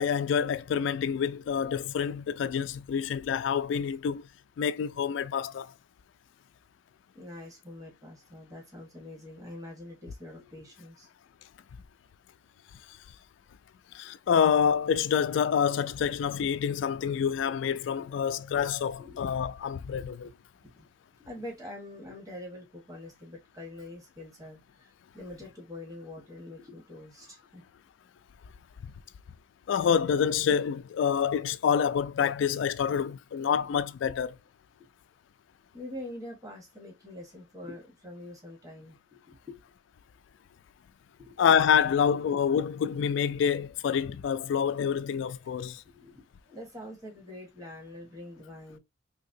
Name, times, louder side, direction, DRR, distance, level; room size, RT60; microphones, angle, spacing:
voice 1, 0.0-4.3 4.6-5.7 13.9-20.3 29.7-34.3 41.4-45.8, left 7 dB, 70° left, 0.3 m, -27 dB
voice 2, 7.1-11.1 18.0-18.1 19.0-19.2 20.5-27.6 35.7-39.6 41.2-41.4 45.7-48.8, left 1 dB, 20° right, 1.3 m, -45 dB
3.3 x 2.9 x 2.6 m
head